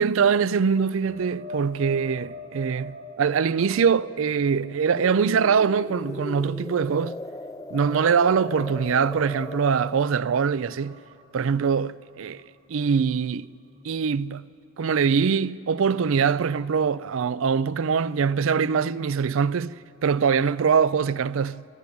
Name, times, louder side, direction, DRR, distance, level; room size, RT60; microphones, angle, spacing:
voice 1, 0.0-7.1 7.7-11.0 11.3-12.4 12.7-13.5 13.8-14.5 14.8-19.8 20.0-21.6, right 6 dB, 65° right, 0.4 m, -23 dB
sound 1, 0.9-8.3 8.7-12.5 12.9-13.1 16.5-16.6, left 1 dB, 45° right, 1.9 m, -45 dB
sound 2, 5.0-10.1, left 2 dB, 15° left, 0.5 m, -37 dB
27.5 x 12.0 x 8.6 m
head